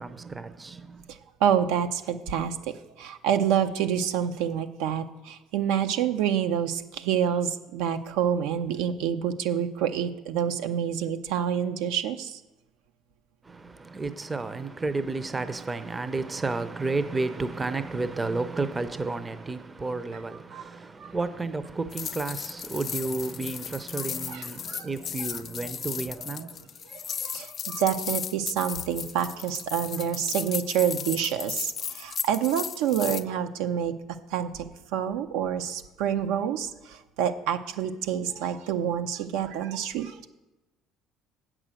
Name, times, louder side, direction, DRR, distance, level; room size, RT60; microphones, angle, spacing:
voice 1, 0.0-1.0 13.5-26.6, right 3 dB, 20° right, 0.6 m, -32 dB
voice 2, 1.1-12.4 20.5-20.7 21.0-21.1 23.9-24.9 25.2-25.7 26.9-33.9 34.3-34.7 34.9-40.2, right 9 dB, 80° right, 0.7 m, -28 dB
sound 1, 21.9-33.2, left 8 dB, 45° left, 0.3 m, -35 dB
7.9 x 6.1 x 7.7 m
supercardioid pair, 100°, 0 cm